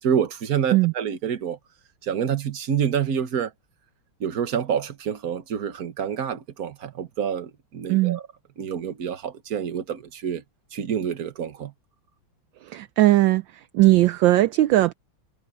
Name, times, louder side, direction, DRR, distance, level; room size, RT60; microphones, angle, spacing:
voice 1, 0.0-1.6 2.0-3.5 4.2-8.2 8.6-10.4 10.7-11.7, right 8 dB, 45° right, 1.6 m, -27 dB
voice 2, 12.6-14.9, right 16 dB, 70° right, 1.2 m, -19 dB
omnidirectional pair, 2.4 m